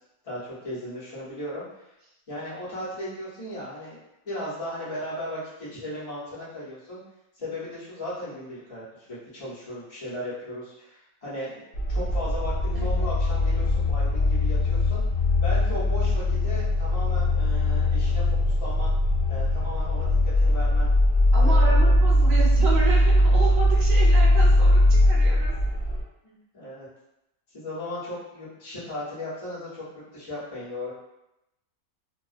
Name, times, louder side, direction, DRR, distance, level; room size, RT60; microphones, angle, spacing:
voice 1, 0.2-1.6 2.3-4.0 4.2-7.0 7.4-15.0 15.4-18.9 19.3-20.9 21.4-21.9 26.2-26.9 27.5-29.8 30.1-30.9, left 1 dB, 30° left, -9 dB, 0.8 m, -36 dB
sound 1, 11.7-26.0, left 1 dB, 65° left, 0.7 m, -21 dB
voice 2, 12.7-13.1 21.3-25.5, right 2 dB, 60° right, -4 dB, 0.7 m, -31 dB
2.3 x 2.2 x 2.4 m, 0.88 s
omnidirectional pair, 1.5 m